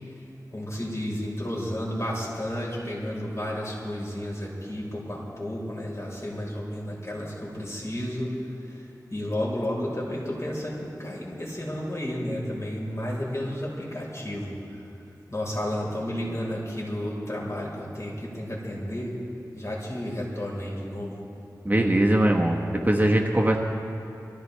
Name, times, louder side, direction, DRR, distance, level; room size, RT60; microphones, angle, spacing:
voice 1, 0.5-8.3 8.6-14.8 15.3-19.1 19.5-21.2, equal, 40° left, -4 dB, 4.5 m, -32 dB
voice 2, 21.6-23.6, right 1 dB, 25° right, 1 dB, 1.2 m, -21 dB
23.0 x 15.0 x 3.4 m, 2.8 s
cardioid pair, 40°, 7 cm